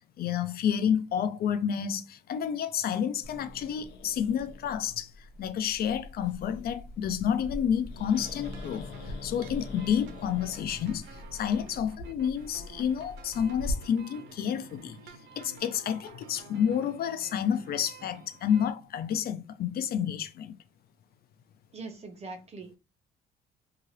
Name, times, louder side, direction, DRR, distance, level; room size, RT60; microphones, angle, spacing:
voice 1, 0.2-15.0 15.4-20.6, left 8 dB, 55° left, 0.4 m, -30 dB
Growling, 3.2-13.7, left 1 dB, 80° left, 0.9 m, -43 dB
sound 1, 8.1-18.7, right 5 dB, 75° right, 0.7 m, -51 dB
voice 2, 21.7-22.8, right 3 dB, 35° right, 0.7 m, -42 dB
2.8 x 2.4 x 3.1 m
cardioid pair, 85°, 18 cm